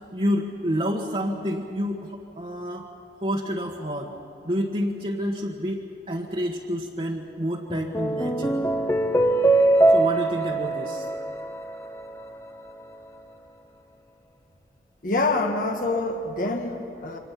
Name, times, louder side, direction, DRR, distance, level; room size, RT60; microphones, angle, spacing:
voice 1, 0.1-2.9 3.2-4.1 4.4-8.6 9.9-11.1, equal, 35° right, -2 dB, 1.6 m, -29 dB
sound 1, 7.7-12.3, right 2 dB, 15° left, 1.2 m, -22 dB
voice 2, 15.0-17.2, left 2 dB, 50° left, 3 dB, 1.7 m, -26 dB
28.5 x 25.5 x 5.9 m, 3.0 s
head